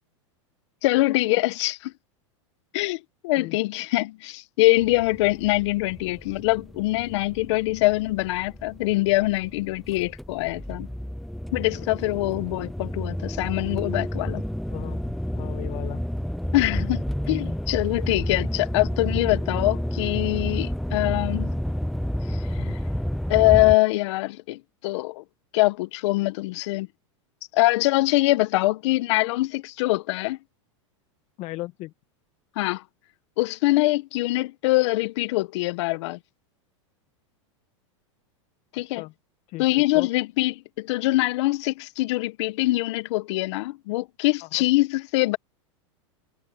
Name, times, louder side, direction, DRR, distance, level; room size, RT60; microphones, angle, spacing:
voice 1, 0.8-1.8 2.7-10.9 11.5-14.4 16.5-21.6 23.3-25.2 25.5-26.9 27.5-30.4 32.6-32.8 33.4-36.2 38.7-39.0 39.6-45.4, left 20 dB, 65° left, 1.2 m, -23 dB
sound 1, 4.8-23.8, equal, ahead, 0.4 m, -30 dB
voice 2, 14.7-16.0 22.6-22.8 31.4-31.9 38.7-39.1 39.5-40.1 44.4-44.6, left 19 dB, 45° left, 1.6 m, -37 dB
hypercardioid pair, 110°, 16 cm